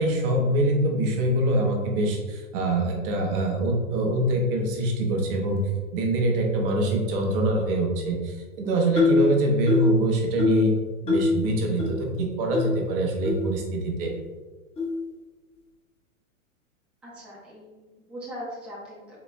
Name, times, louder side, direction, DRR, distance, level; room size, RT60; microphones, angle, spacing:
voice 1, 0.0-10.7 11.0-14.1, right 1 dB, 40° right, 1 dB, 0.9 m, -24 dB
sound 1, 9.0-9.3 9.7-10.0 10.4-10.7 11.1-11.3 11.8-11.9 12.5-12.7 13.2-13.3 14.0-14.1 14.8-14.9, left 4 dB, 15° left, 1.1 m, -22 dB
voice 2, 17.0-19.2, equal, ahead, -7 dB, 0.7 m, -40 dB
5.4 x 4.1 x 2.2 m, 1.3 s
hypercardioid pair, 130°, 43 cm